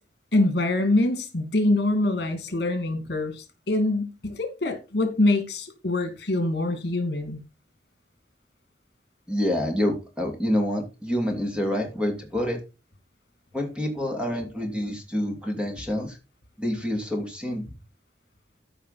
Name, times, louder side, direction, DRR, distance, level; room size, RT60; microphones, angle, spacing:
voice 1, 0.3-7.4, left 2 dB, 65° left, 2.7 m, -24 dB
voice 2, 9.3-12.6 13.5-16.2 16.6-17.7, equal, 5° right, 2.7 m, -27 dB
14.0 x 5.6 x 4.2 m
head